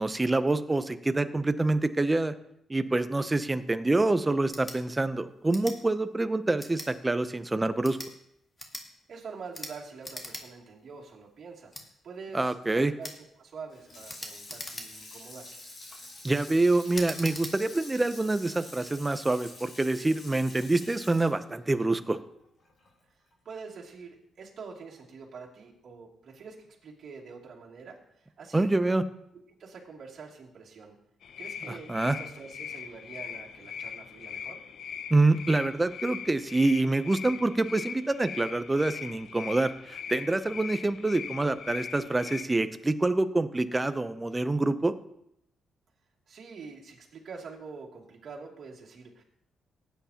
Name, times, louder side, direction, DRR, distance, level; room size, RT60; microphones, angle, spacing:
voice 1, 0.0-2.3 2.7-8.0 12.3-12.9 16.2-22.2 28.5-29.0 31.7-32.2 35.1-44.9, right 2 dB, 15° right, 11 dB, 0.6 m, -26 dB
sound 1, 4.4-4.8 5.5-5.8 6.6-6.9 7.7-8.1 8.6-8.9 9.5-9.7 10.0-10.4 10.8-10.9 11.7-11.9 13.0-13.2 14.1-15.1 15.7-16.0 16.9-17.5, left 2 dB, 20° left, 1.6 m, -41 dB
voice 2, 9.1-15.5 23.4-28.6 29.3-31.0 31.4-34.6 46.3-49.2, right 5 dB, 50° right, -3 dB, 2.6 m, -45 dB
Water tap faucet / Sink (filling or washing), 13.7-22.9 23.3-23.4, left 2 dB, 45° left, 4.1 m, -47 dB
sound 2, 31.2-42.4, left 7 dB, 65° left, 0.6 m, -41 dB
18.5 x 9.3 x 2.9 m, 0.77 s
cardioid pair, 135°, 0 cm